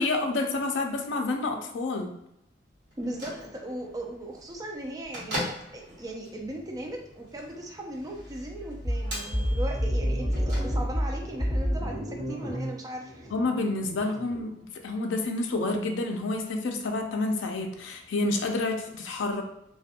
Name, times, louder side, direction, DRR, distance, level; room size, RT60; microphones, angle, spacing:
voice 1, 0.0-2.2 13.3-19.4, left 2 dB, 75° left, 3 dB, 0.4 m, -29 dB
Bell / Microwave oven, 2.9-11.2, equal, 65° right, 1.0 m, -41 dB
voice 2, 3.0-5.4 5.7-13.3, right 1 dB, 20° right, 1 dB, 0.4 m, -38 dB
sound 1, 8.8-14.5, equal, 10° left, 0.9 m, -29 dB
2.5 x 2.2 x 2.7 m, 0.79 s
head